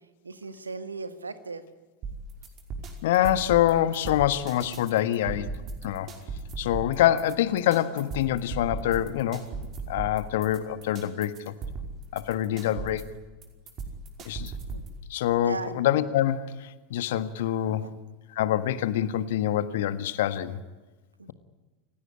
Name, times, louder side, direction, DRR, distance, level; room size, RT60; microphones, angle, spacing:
voice 1, 0.2-1.6 14.7-14.8 15.3-15.8 17.8-17.9 21.2-21.3, right 3 dB, 80° right, 12 dB, 1.9 m, -37 dB
sound 1, 2.0-15.0, right 3 dB, 35° right, 5.2 m, -38 dB
voice 2, 3.0-5.5 5.8-6.1 6.6-9.4 9.9-11.5 12.1-13.1 14.2-14.5 15.1-17.9 18.3-20.6, left 12 dB, 60° left, 14 dB, 1.5 m, -25 dB
29.0 x 17.0 x 10.0 m, 1.3 s
figure-of-eight pair, 85°, 0 cm